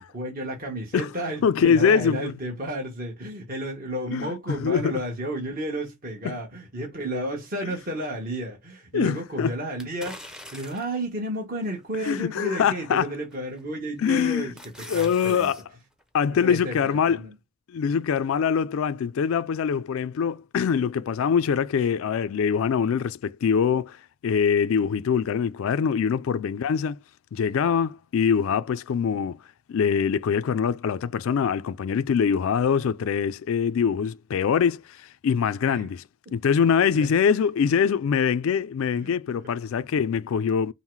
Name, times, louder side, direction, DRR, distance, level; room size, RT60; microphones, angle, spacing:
voice 1, 0.0-15.5 16.4-17.3 35.6-35.9 36.9-37.1 38.9-39.1, right 1 dB, 40° right, 1.2 m, -32 dB
voice 2, 1.4-2.3 4.1-4.3 4.6-5.0 6.2-6.3 8.9-9.5 12.1-13.1 14.0-14.5 14.9-15.6 16.1-17.2 17.7-27.0 27.3-29.4 29.7-36.0 36.3-40.7, left 7 dB, 65° left, 0.3 m, -23 dB
sound 1, 9.8-11.0 11.6-11.7 13.3-13.6 14.1-15.6 16.0-16.1, equal, 5° right, 0.6 m, -43 dB
5.5 x 2.0 x 4.6 m
head